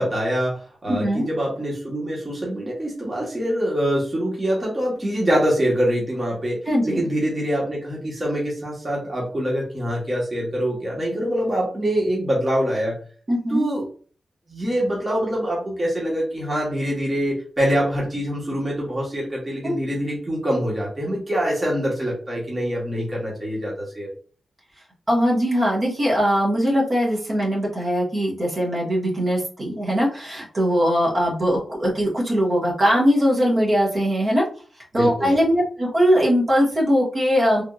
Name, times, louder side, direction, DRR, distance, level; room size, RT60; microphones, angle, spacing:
voice 1, 0.0-13.0 13.5-13.9 14.5-24.1 34.9-35.3, equal, 30° right, -4 dB, 1.4 m, -24 dB
voice 2, 0.9-1.2 6.7-7.1 13.3-13.6 19.6-19.8 25.1-34.4 34.9-37.6, equal, 45° right, -4 dB, 1.5 m, -20 dB
3.5 x 2.8 x 2.4 m, 0.41 s
cardioid pair, 75°, 0 cm